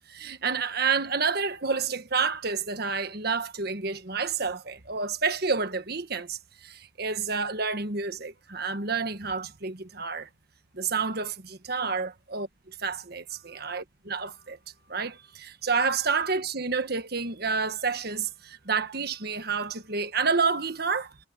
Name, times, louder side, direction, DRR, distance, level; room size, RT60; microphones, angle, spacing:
voice 1, 0.1-10.3 10.7-14.6 14.9-21.3, right 5 dB, 55° right, 1.5 m, -29 dB
head